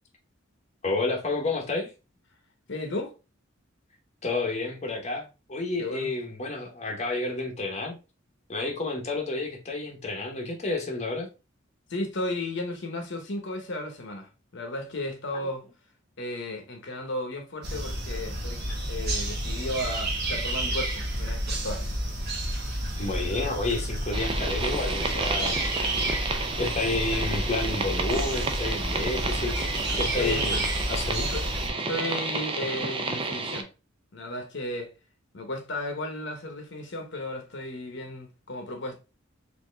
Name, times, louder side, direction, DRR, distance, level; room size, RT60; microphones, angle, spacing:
voice 1, 0.8-1.9 4.2-8.0 8.5-11.3 23.0-25.6 25.9-26.0 26.6-29.5 29.9-31.3, left 2 dB, 35° left, 0.9 m, -30 dB
voice 2, 2.7-3.1 5.8-6.1 11.9-15.7 16.2-18.6 18.9-22.0 25.4-25.7 30.2-30.6 31.3-31.4 31.8-33.7 34.1-34.9 35.3-39.0, left 1 dB, 60° left, 1.0 m, -34 dB
sound 1, 17.6-31.7, right 1 dB, 55° right, 1.2 m, -30 dB
sound 2, 24.1-33.6, right 3 dB, 25° right, 0.5 m, -31 dB
4.4 x 2.8 x 3.2 m
head